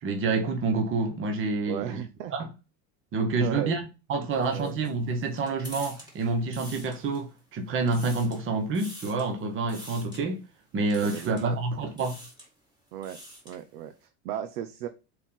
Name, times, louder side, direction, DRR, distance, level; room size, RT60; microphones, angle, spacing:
voice 1, 0.0-2.0 2.3-2.4 3.1-10.4 10.7-12.2, right 3 dB, 25° right, 1.1 m, -28 dB
voice 2, 1.7-2.3 3.4-3.8 4.5-4.7 11.0-11.6 12.9-13.2 13.4-14.9, right 10 dB, 85° right, 0.8 m, -35 dB
sound 1, 4.3-7.4 7.7-8.4 8.7-9.3 9.7-10.2 10.9-11.5 11.9-12.5 12.9-13.6, equal, 10° right, 2.3 m, -46 dB
4.5 x 4.4 x 5.6 m
supercardioid pair, 135°, 46 cm